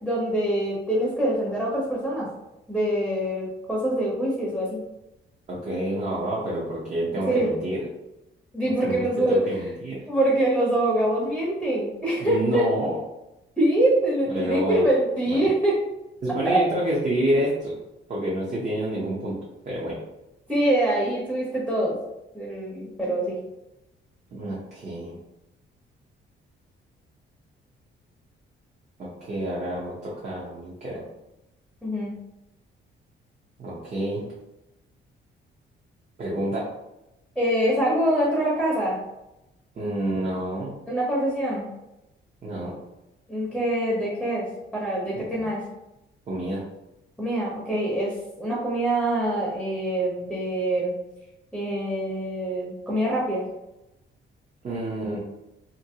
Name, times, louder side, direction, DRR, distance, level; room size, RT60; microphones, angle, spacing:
voice 1, 0.0-2.3 2.7-4.8 7.3-7.5 8.5-9.4 10.1-12.6 13.6-15.8 16.4-16.6 20.5-22.0 22.3-23.4 31.8-32.1 37.4-39.0 40.9-41.7 43.3-44.5 44.7-45.6 47.2-50.9 51.5-53.4, right 1 dB, 5° right, -5 dB, 0.7 m, -24 dB
voice 2, 5.5-7.8 8.8-10.0 12.2-13.0 14.3-14.8 15.3-15.4 16.2-17.7 18.1-19.3 19.6-20.0 24.3-25.2 29.0-31.0 33.6-34.2 36.2-36.6 39.7-40.7 42.4-42.7 45.1-45.4 46.3-46.6 54.6-55.2, right 1 dB, 35° right, -6 dB, 0.7 m, -28 dB
2.7 x 2.6 x 2.7 m, 0.92 s
cardioid pair, 135°, 20 cm